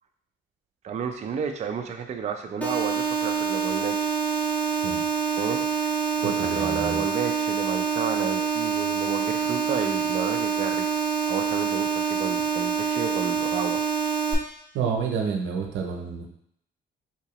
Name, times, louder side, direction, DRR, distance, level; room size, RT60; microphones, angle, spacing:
voice 1, 0.8-4.1 5.4-10.9 11.3-13.8, right 6 dB, 35° right, 4 dB, 0.4 m, -32 dB
sound 1, 2.6-14.3, right 6 dB, 5° left, 0.7 m, -26 dB
voice 2, 6.2-7.0 14.7-16.3, right 6 dB, 85° right, 2 dB, 0.7 m, -29 dB
3.7 x 2.9 x 2.9 m, 0.70 s
cardioid pair, 90°, 20 cm